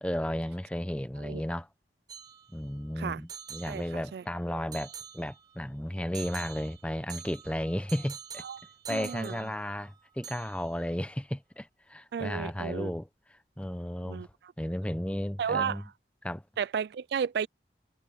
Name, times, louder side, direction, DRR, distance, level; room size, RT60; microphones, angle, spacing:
voice 1, 0.0-1.7 2.5-8.4 8.9-14.3 14.6-15.8 16.2-16.4, equal, 5° left, 0.8 m, -34 dB
sound 1, 2.1-2.8 3.3-4.3 4.7-5.6 6.1-10.0 10.2-10.9, right 8 dB, 25° right, 5.1 m, -46 dB
voice 2, 3.7-4.2 8.4-8.6 8.9-9.4 12.1-12.9 14.0-14.3 15.4-15.8 16.6-17.5, right 7 dB, 70° right, 0.3 m, -33 dB
head